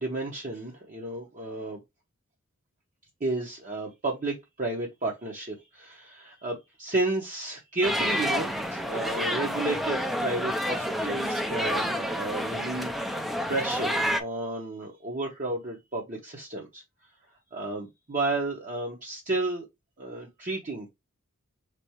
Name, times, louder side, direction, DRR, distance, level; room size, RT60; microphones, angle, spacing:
voice 1, 0.0-1.8 3.2-16.8 17.5-19.6 20.0-20.9, right 2 dB, 40° right, 0.8 m, -32 dB
sound 1, 7.8-14.2, equal, ahead, 0.4 m, -29 dB
3.9 x 3.4 x 2.9 m
head